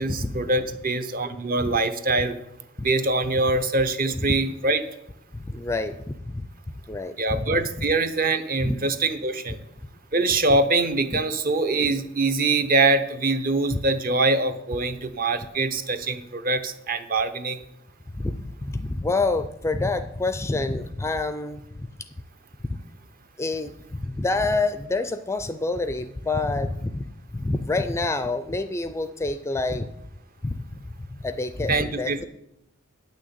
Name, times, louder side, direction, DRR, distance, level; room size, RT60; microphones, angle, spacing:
voice 1, 0.0-2.4 2.8-4.8 7.2-9.6 10.1-17.6 31.7-32.3, right 3 dB, 40° right, 10 dB, 0.9 m, -24 dB
voice 2, 5.3-6.0 6.3-6.5 6.9-7.9 8.6-8.8 11.1-11.2 13.7-13.8 18.1-18.4 18.6-21.9 23.4-27.0 27.3-29.9 30.4-30.8 31.2-32.2, left 2 dB, 15° left, 11 dB, 0.4 m, -27 dB
9.1 x 6.3 x 8.5 m, 0.79 s
head